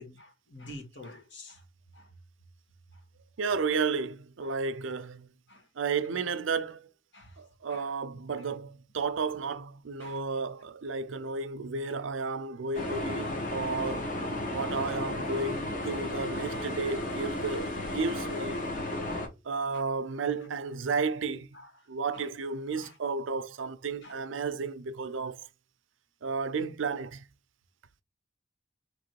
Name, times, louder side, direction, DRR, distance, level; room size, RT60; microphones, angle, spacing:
voice 1, 0.0-1.6 1.9-2.1 2.9-3.0 4.4-4.6 5.5-5.6 7.1-7.4 7.7-7.8 10.0-10.2 11.8-11.9 13.8-13.9 14.4-14.5 19.0-19.2 19.7-19.8 21.5-21.7 22.1-22.2 22.7-22.9 24.0-24.2, left 1 dB, 65° left, 1.6 m, -48 dB
voice 2, 3.4-5.3 5.8-6.9 7.4-14.1 14.5-18.7 19.4-21.5 21.9-25.5 26.2-27.3, right 4 dB, 80° right, 0.5 m, -32 dB
sound 1, 12.7-19.3, left 1 dB, 40° left, 1.1 m, -34 dB
3.7 x 3.1 x 4.5 m
head